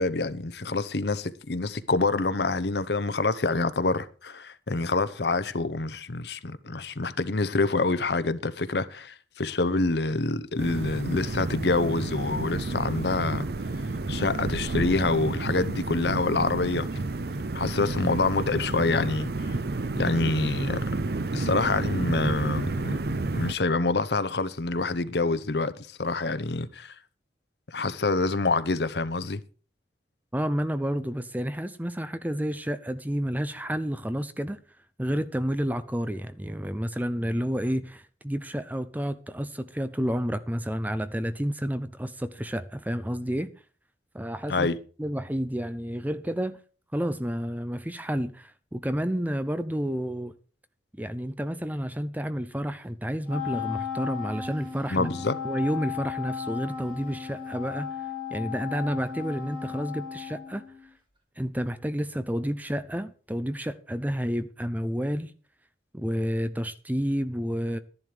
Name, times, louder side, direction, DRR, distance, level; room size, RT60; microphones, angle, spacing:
voice 1, 0.0-13.4 14.1-17.0 17.5-19.5 19.9-20.8 21.3-23.0 23.3-26.9 27.7-29.4 44.5-44.8 54.9-55.4, left 3 dB, 65° left, 0.9 m, -26 dB
sound 1, 10.6-23.5, right 2 dB, 55° right, 0.6 m, -30 dB
voice 2, 30.3-34.6 35.0-43.5 44.1-44.7 45.0-46.6 46.9-50.3 51.0-55.1 55.4-57.9 58.3-60.6 61.4-65.3 65.9-67.8, equal, 10° right, 0.7 m, -30 dB
Wind instrument woodwind instrument, 53.3-60.9, left 7 dB, 30° right, 2.7 m, -35 dB
12.5 x 11.0 x 5.0 m
head